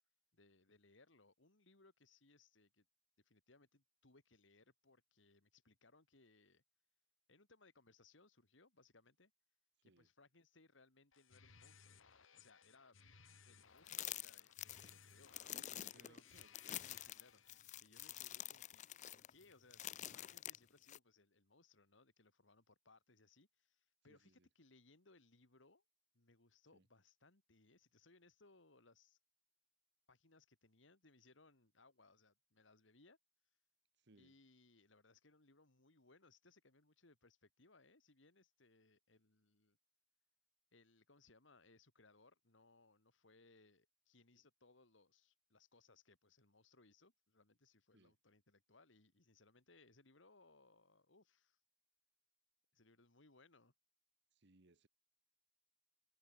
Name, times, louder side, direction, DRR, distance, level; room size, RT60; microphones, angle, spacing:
voice 1, 0.3-2.9 3.2-6.6 7.3-9.3 9.8-12.0 12.3-13.0 13.5-16.1 16.7-18.8 19.1-25.8 26.1-29.2 30.1-33.2 34.2-39.8 40.7-51.6 52.7-53.7, left 3 dB, 70° left, 2.6 m, -69 dB
sound 1, 11.1-17.6, left 6 dB, 90° left, 2.0 m, -65 dB
sound 2, 13.9-21.0, left 13 dB, 40° left, 0.3 m, -48 dB
voice 2, 15.5-16.6 24.1-24.5 26.7-26.9 34.0-34.4 47.9-48.1 54.3-54.9, right 2 dB, 60° right, 1.5 m, -68 dB
head